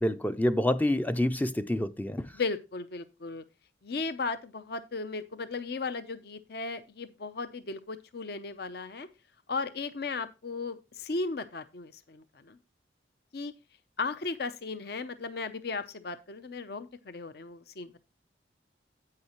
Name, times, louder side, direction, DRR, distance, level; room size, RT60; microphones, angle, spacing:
voice 1, 0.0-2.3, left 1 dB, 10° left, 0.4 m, -27 dB
voice 2, 2.3-3.4 3.8-9.1 9.5-12.6 13.3-13.5 14.0-17.9, left 4 dB, 55° left, 0.6 m, -36 dB
9.7 x 8.7 x 2.9 m
head